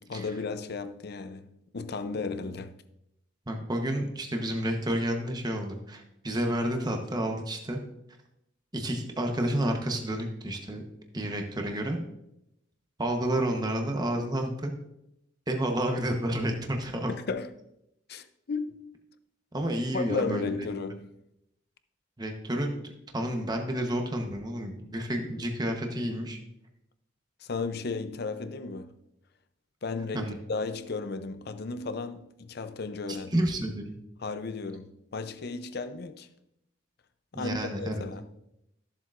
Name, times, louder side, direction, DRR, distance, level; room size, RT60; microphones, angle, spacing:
voice 1, 0.0-2.7 17.1-17.5 18.1-18.9 19.9-21.1 27.4-28.9 29.8-33.4 34.2-36.3 37.3-38.3, left 4 dB, 55° left, 0.6 m, -34 dB
voice 2, 3.5-7.8 8.7-10.8 11.1-12.0 13.0-14.7 15.5-17.1 19.5-20.7 22.2-26.4 30.1-30.3 33.1-34.0 37.3-38.0, right 1 dB, 20° right, 1.0 m, -30 dB
14.0 x 7.4 x 2.5 m
head